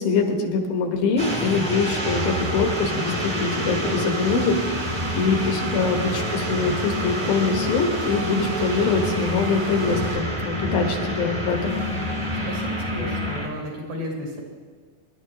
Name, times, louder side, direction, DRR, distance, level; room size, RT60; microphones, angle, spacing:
voice 1, 0.0-11.8, left 4 dB, 80° left, 3 dB, 3.1 m, -24 dB
sound 1, 1.2-13.5, equal, 40° right, 0.5 m, -28 dB
sound 2, 2.0-10.3, right 5 dB, 65° right, 1.5 m, -37 dB
voice 2, 12.4-14.4, equal, 85° right, -2 dB, 4.7 m, -33 dB
24.5 x 11.0 x 3.1 m, 1.5 s
omnidirectional pair, 4.0 m